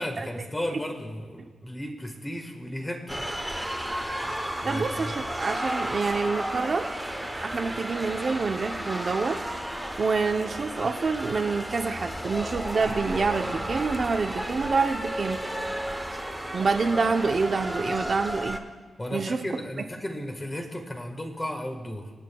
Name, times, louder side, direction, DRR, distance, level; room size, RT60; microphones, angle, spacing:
voice 1, 0.0-3.2 4.6-5.1 19.0-22.1, left 1 dB, 15° left, 3 dB, 1.4 m, -34 dB
sound 1, 3.1-18.6, equal, ahead, 0.8 m, -33 dB
voice 2, 4.6-6.9 7.4-9.4 10.0-15.4 16.5-18.6 19.1-19.4, right 4 dB, 45° right, 5 dB, 0.6 m, -27 dB
sound 2, 5.5-12.0 12.6-17.9, right 2 dB, 20° right, 1.5 m, -41 dB
24.5 x 8.8 x 2.3 m, 1.4 s
wide cardioid pair, 110°, 0 cm